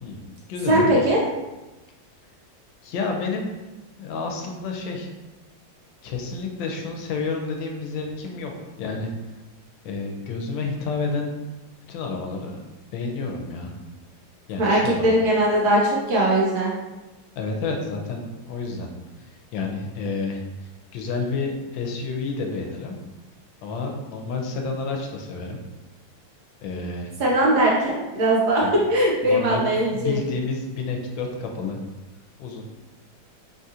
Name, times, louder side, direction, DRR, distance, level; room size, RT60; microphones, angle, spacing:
voice 1, 0.0-0.9 2.8-3.5 4.0-5.1 6.0-9.3 9.8-11.3 11.9-12.6 12.9-13.7 14.5-15.1 17.4-18.9 19.2-23.0 23.6-25.6 26.6-27.1 28.6-28.7 29.2-31.8 32.4-32.7, left 4 dB, 80° left, 2 dB, 1.3 m, -30 dB
voice 2, 0.7-1.2 14.6-16.7 27.2-28.6 28.9-30.2, right 1 dB, 70° right, -3 dB, 1.0 m, -20 dB
3.6 x 2.4 x 2.7 m, 1.1 s
omnidirectional pair, 2.1 m